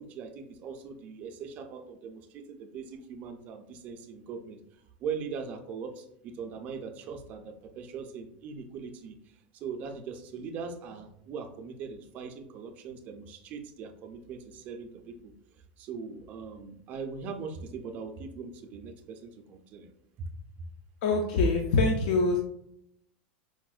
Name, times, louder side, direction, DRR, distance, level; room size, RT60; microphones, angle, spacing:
voice 1, 0.0-4.6 5.0-9.2 9.5-15.3 15.8-19.9 20.2-20.3, right 5 dB, 30° right, 6 dB, 0.3 m, -40 dB
voice 2, 21.0-22.4, left 3 dB, 60° left, 2 dB, 0.4 m, -24 dB
4.7 x 2.1 x 2.3 m, 0.73 s
supercardioid pair, 170°, 5 cm